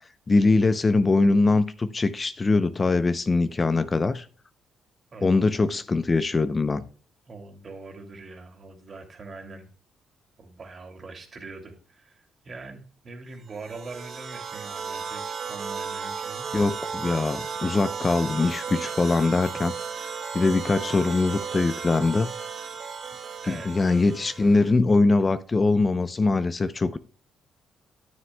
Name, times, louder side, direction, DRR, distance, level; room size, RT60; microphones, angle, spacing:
voice 1, 0.3-4.3 5.2-6.8 16.5-19.7 20.3-22.3 23.5-27.0, left 3 dB, 30° left, 0.5 m, -22 dB
voice 2, 5.1-5.7 7.3-9.7 10.4-16.5 23.4-23.9, right 3 dB, 40° right, 2.3 m, -43 dB
sound 1, 13.5-24.7, right 6 dB, 60° right, 1.9 m, -35 dB
9.5 x 9.3 x 2.2 m
cardioid pair, 90°, 0 cm